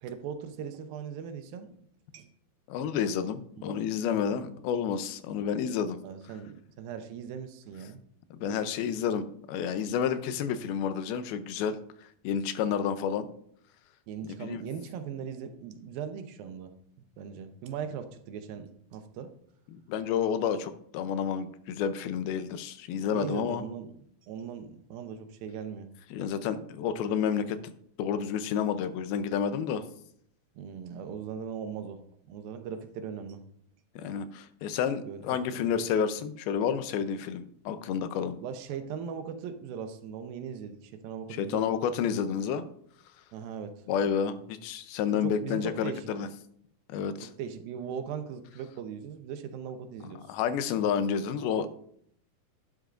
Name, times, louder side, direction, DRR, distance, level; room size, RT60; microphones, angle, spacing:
voice 1, 0.0-1.7 2.1-2.3 3.7-3.9 6.0-8.0 14.1-16.7 17.2-19.3 23.1-23.9 24.2-25.9 30.6-33.4 35.1-35.8 38.4-41.6 43.3-43.9 45.1-46.1 47.4-50.2, right 7 dB, 80° right, 8 dB, 2.6 m, -39 dB
voice 2, 2.7-6.0 8.3-13.3 14.2-14.6 19.7-23.6 26.1-27.7 28.0-29.8 34.0-38.4 41.3-42.6 43.9-46.3 46.9-47.3 50.3-51.8, left 7 dB, 90° left, 11 dB, 2.6 m, -30 dB
11.5 x 10.5 x 2.5 m, 0.67 s
omnidirectional pair, 4.3 m